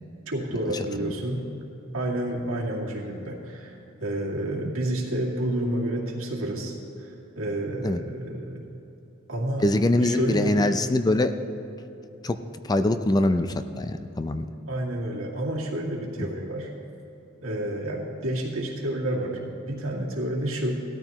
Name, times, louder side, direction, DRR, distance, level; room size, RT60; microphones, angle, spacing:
voice 1, 0.3-1.4 1.9-8.7 9.3-9.6 10.0-10.7 14.7-16.7 17.4-20.8, right 1 dB, 80° right, -3 dB, 2.2 m, -30 dB
voice 2, 9.6-11.3 12.2-12.4 12.6-14.5, left 1 dB, 20° left, 9 dB, 0.4 m, -23 dB
17.5 x 13.0 x 3.0 m, 3.0 s
head